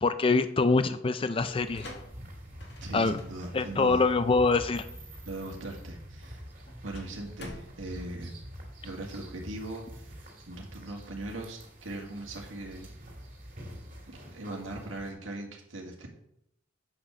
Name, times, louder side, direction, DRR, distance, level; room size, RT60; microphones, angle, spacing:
voice 1, 0.0-1.8 2.9-3.2 3.5-4.9, left 3 dB, 30° left, 12 dB, 0.4 m, -25 dB
sound 1, 1.4-15.1, equal, 45° right, 3.2 m, -46 dB
sound 2, 1.7-9.1, left 2 dB, 60° left, 2.0 m, -50 dB
voice 2, 2.8-4.0 5.3-6.4 6.8-8.3 8.8-12.9 14.1-16.1, right 2 dB, 90° right, 0 dB, 1.9 m, -40 dB
8.6 x 5.7 x 6.2 m, 0.76 s
head